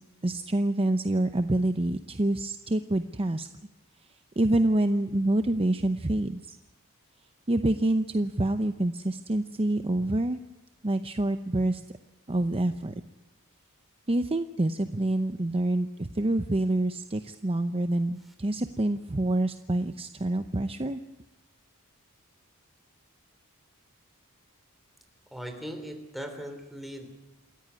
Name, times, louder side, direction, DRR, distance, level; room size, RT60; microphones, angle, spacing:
voice 1, 0.2-3.5 4.4-6.6 7.5-10.4 10.8-11.8 12.3-12.9 14.1-21.0, right 1 dB, 25° right, 9 dB, 0.7 m, -27 dB
voice 2, 25.3-27.1, equal, ahead, 5 dB, 3.5 m, -39 dB
28.0 x 14.0 x 9.7 m, 1.0 s
head